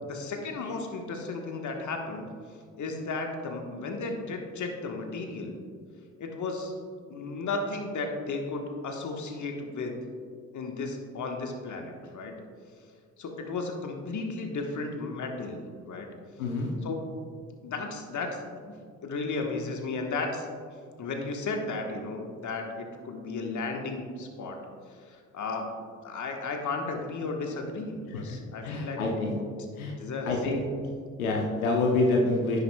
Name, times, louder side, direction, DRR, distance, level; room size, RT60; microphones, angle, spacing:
voice 1, 0.0-2.3 2.8-5.6 6.2-6.7 7.1-9.9 10.5-12.3 13.2-16.1 16.8-17.3 17.6-18.4 19.0-20.5 21.0-24.6 25.1-25.8 26.0-29.0 29.8-30.3, left 3 dB, 45° left, 3 dB, 1.3 m, -34 dB
voice 2, 16.4-16.7 28.1-28.4 28.6-29.3 29.8-29.9 30.2-30.6 31.2-32.6, left 2 dB, 90° left, 0 dB, 0.8 m, -27 dB
10.5 x 7.9 x 2.3 m, 2.1 s
hypercardioid pair, 50°, 41 cm